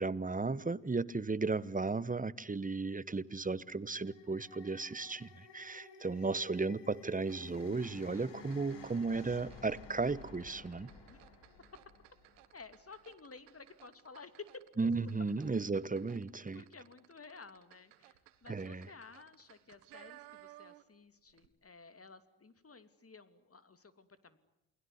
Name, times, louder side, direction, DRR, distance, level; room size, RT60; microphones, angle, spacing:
voice 1, 0.0-10.9 14.8-16.6 18.5-18.9, right 3 dB, 20° right, 1.2 m, -35 dB
sound 1, 3.8-13.1, left 4 dB, 70° left, 5.8 m, -55 dB
sound 2, 7.2-21.0 21.3-21.5, right 17 dB, 90° right, 1.7 m, -60 dB
voice 2, 12.3-14.6 16.3-24.4, left 4 dB, 30° left, 2.9 m, -54 dB
29.0 x 21.0 x 9.7 m
hypercardioid pair, 60°, 46 cm